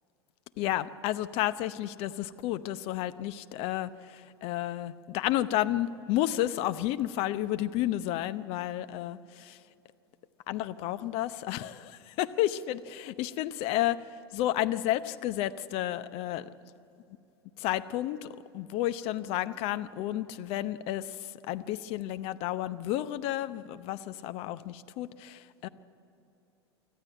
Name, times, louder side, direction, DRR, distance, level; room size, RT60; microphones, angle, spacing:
voice 1, 0.6-9.6 10.5-16.5 17.6-25.7, left 13 dB, 45° left, 13 dB, 0.8 m, -31 dB
24.5 x 14.0 x 8.8 m, 2.8 s
figure-of-eight pair, 85°, 14 cm